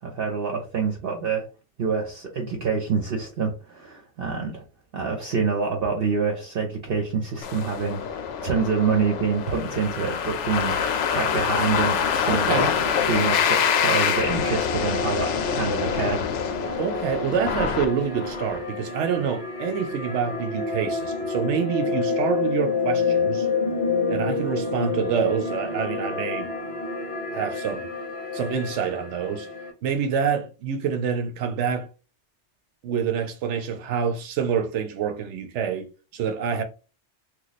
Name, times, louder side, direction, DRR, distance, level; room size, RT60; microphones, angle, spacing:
voice 1, 0.0-1.5 1.8-4.6 4.9-10.7 11.1-12.7 13.0-16.2, right 5 dB, 55° right, 0.9 m, -26 dB
sound 1, 7.4-18.6, left 7 dB, 80° left, 0.9 m, -26 dB
voice 2, 12.3-12.7 16.8-23.5 24.1-26.5 27.3-27.9 28.3-29.5 29.8-31.9 32.8-36.6, right 7 dB, 80° right, 1.0 m, -27 dB
sound 2, 12.8-29.7, left 4 dB, 35° left, 0.7 m, -29 dB
3.0 x 2.3 x 4.0 m
omnidirectional pair, 1.2 m